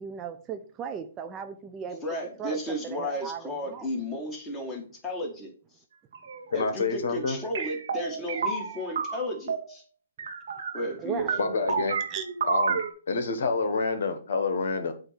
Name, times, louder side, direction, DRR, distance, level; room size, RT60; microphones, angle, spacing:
voice 1, 0.0-2.0 2.4-3.9 11.0-11.4 12.1-12.2, right 7 dB, 20° right, 0.5 m, -37 dB
voice 2, 2.0-5.5 6.5-9.8 10.7-11.3, left 1 dB, 15° left, 1.8 m, -34 dB
sound 1, 6.1-6.6 7.1-9.7 10.2-10.9 11.2-12.9, right 5 dB, 70° right, 1.0 m, -31 dB
voice 3, 6.5-7.4 11.4-12.0 12.5-12.8 13.1-14.9, left 4 dB, 70° left, 1.1 m, -27 dB
7.9 x 2.7 x 5.8 m
hypercardioid pair, 135°, 0 cm